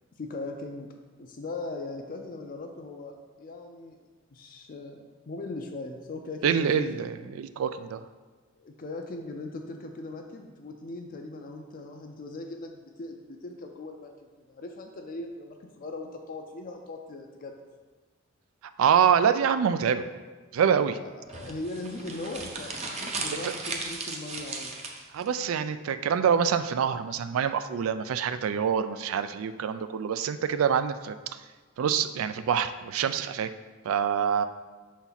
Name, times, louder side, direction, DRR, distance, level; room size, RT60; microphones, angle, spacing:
voice 1, 0.2-0.9 1.2-7.1 8.6-14.1 14.5-17.6 21.0-24.7, left 2 dB, 45° left, 3 dB, 0.5 m, -39 dB
voice 2, 6.4-8.0 18.8-20.1 20.5-21.0 23.3-23.5 25.1-31.4 31.8-33.5 33.8-34.4, right 7 dB, 90° right, 11 dB, 0.3 m, -26 dB
sound 1, 21.3-25.3, right 3 dB, 35° right, 0.6 m, -36 dB
5.9 x 4.2 x 3.9 m, 1.3 s
head